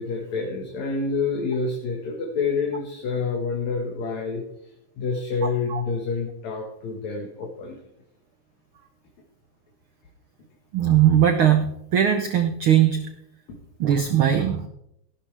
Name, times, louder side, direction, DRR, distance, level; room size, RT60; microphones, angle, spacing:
voice 1, 0.0-4.4 5.0-7.8 13.5-13.6, left 4 dB, 65° left, 0 dB, 2.7 m, -28 dB
voice 2, 10.7-13.1 13.8-14.7, right 10 dB, 85° right, 6 dB, 1.1 m, -19 dB
15.0 x 12.5 x 3.4 m, 0.76 s
omnidirectional pair, 3.6 m